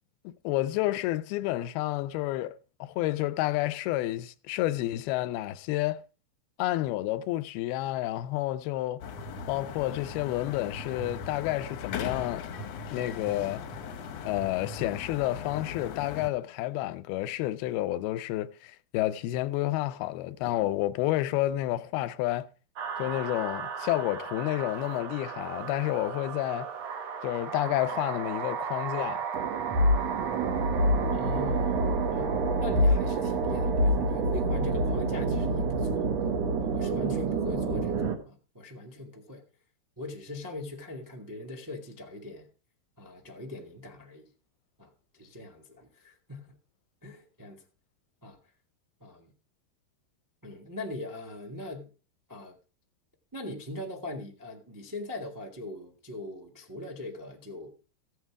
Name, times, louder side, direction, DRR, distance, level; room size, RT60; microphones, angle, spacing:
voice 1, 0.2-6.0 6.6-9.0 9.5-12.5 12.9-13.6 14.3-22.5 23.0-26.7 27.2-29.2, left 15 dB, 90° left, 2.6 m, -30 dB
sound 1, 9.0-16.3, left 6 dB, 65° left, 1.6 m, -39 dB
sound 2, 22.8-38.1, right 2 dB, 55° right, 2.3 m, -28 dB
voice 2, 31.1-32.3 32.6-36.1 36.6-39.4 40.0-42.5 43.0-44.3 44.8-46.6 47.0-47.6 48.2-48.4 49.0-49.3 50.4-51.9 52.3-52.6 53.3-57.7, left 2 dB, 20° right, 0.5 m, -41 dB
15.5 x 8.0 x 4.7 m
omnidirectional pair, 4.3 m